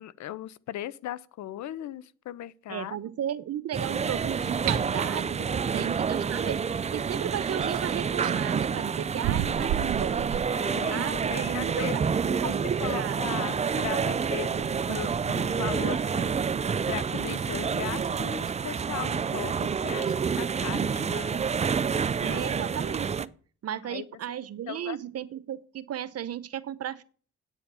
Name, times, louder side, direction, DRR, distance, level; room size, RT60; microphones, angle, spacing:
voice 1, 0.0-3.0 4.8-4.9 5.2-5.3 5.6-5.7 7.9-8.0 10.5-12.0 12.3-12.5 12.8-16.4 16.9-21.4 22.2-22.6 23.7-24.0 24.7-25.0, left 13 dB, 70° left, 0.6 m, -38 dB
voice 2, 2.7-10.4 10.9-13.5 22.2-23.3 23.6-27.0, right 10 dB, 55° right, 0.8 m, -35 dB
sound 1, 3.7-23.3, right 6 dB, 25° right, 0.4 m, -28 dB
sound 2, 4.7-4.8 6.7-6.8 7.4-8.4 9.2-10.5, right 13 dB, 85° right, 0.6 m, -31 dB
8.9 x 7.1 x 6.9 m
cardioid pair, 90°, 30 cm